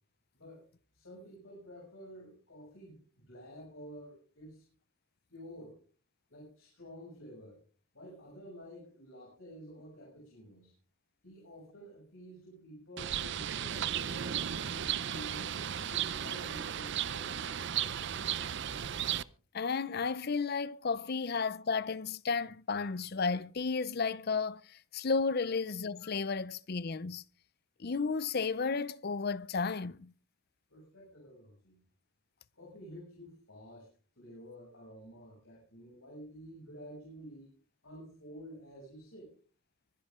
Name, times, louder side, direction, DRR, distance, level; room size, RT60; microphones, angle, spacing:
voice 1, 0.3-0.7 0.9-4.6 5.3-5.8 6.3-7.6 7.9-10.7 11.2-18.5 30.7-31.8 32.5-33.9 34.2-37.5 37.8-39.3, equal, 70° left, 7.2 m, -50 dB
Bird, 13.0-19.2, right 9 dB, 55° right, 0.6 m, -35 dB
voice 2, 19.5-27.2 27.8-30.1, left 4 dB, 45° left, 0.6 m, -33 dB
24.5 x 10.5 x 3.7 m
head